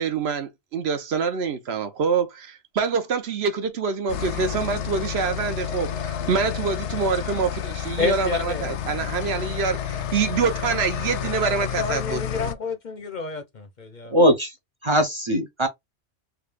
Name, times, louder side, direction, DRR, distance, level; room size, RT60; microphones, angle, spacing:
voice 1, 0.0-12.5, right 5 dB, 65° right, 1.0 m, -26 dB
sound 1, 4.1-12.5, left 9 dB, 80° left, 0.9 m, -30 dB
voice 2, 8.0-8.7 11.5-14.2, left 4 dB, 50° left, 0.6 m, -29 dB
voice 3, 14.1-14.5 14.8-15.7, equal, 35° right, 0.5 m, -20 dB
3.4 x 2.5 x 3.2 m
omnidirectional pair, 1.2 m